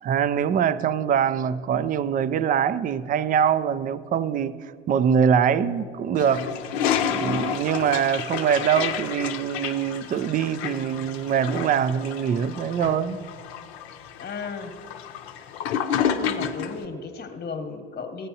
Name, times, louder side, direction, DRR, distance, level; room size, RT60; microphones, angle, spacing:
voice 1, 0.0-6.5 7.1-13.2, right 8 dB, 30° right, 0.4 m, -23 dB
Toilet flush, 6.2-16.8, left 8 dB, 75° left, 0.7 m, -30 dB
voice 2, 14.2-14.7 16.0-18.3, left 5 dB, 30° left, 1.2 m, -35 dB
14.5 x 9.0 x 2.7 m
hypercardioid pair, 85°, 31 cm